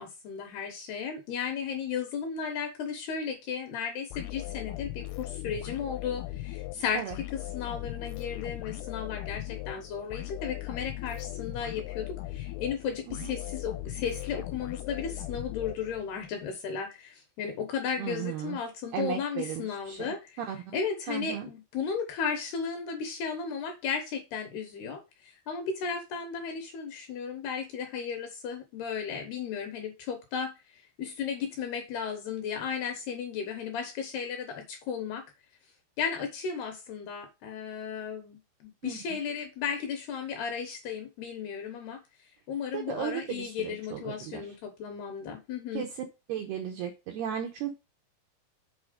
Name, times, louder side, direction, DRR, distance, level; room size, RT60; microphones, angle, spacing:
voice 1, 0.0-20.4 20.7-35.2 36.0-42.0 42.5-45.9, left 6 dB, 70° left, 2.6 m, -35 dB
sound 1, 4.1-16.3, left 15 dB, 85° left, 3.3 m, -39 dB
voice 2, 18.0-18.6 18.9-21.5 38.8-39.0 42.7-44.5 45.7-47.7, right 9 dB, 85° right, 2.3 m, -36 dB
7.5 x 4.4 x 5.1 m
omnidirectional pair, 5.8 m